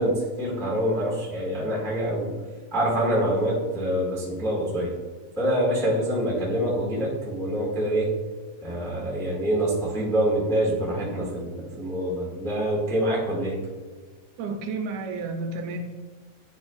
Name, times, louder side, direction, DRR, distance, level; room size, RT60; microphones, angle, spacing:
voice 1, 0.0-2.3 2.7-4.9 5.4-8.1 8.6-13.6, right 1 dB, ahead, -5 dB, 0.6 m, -25 dB
voice 2, 14.4-15.8, right 4 dB, 80° right, 4 dB, 2.0 m, -31 dB
9.9 x 5.1 x 2.3 m, 1.4 s
omnidirectional pair, 3.3 m